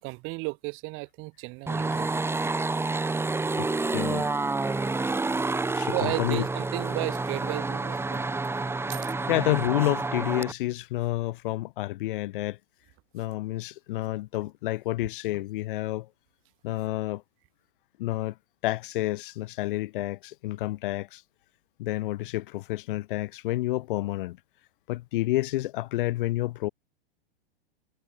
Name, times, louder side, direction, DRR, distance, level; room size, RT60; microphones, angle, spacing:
voice 1, 0.0-2.1 2.3-2.4 5.9-8.2 8.9-9.1, right 25 dB, 40° right, 4.2 m, -34 dB
sound 1, 1.7-10.5, right 3 dB, 10° right, 3.6 m, -29 dB
voice 2, 3.6-4.3 5.7-6.4 9.3-12.6 13.1-16.1 16.6-17.2 18.0-18.4 18.6-21.2 21.8-24.4 24.9-26.7, left 17 dB, 55° left, 3.2 m, -29 dB
hypercardioid pair, 115°, 31 cm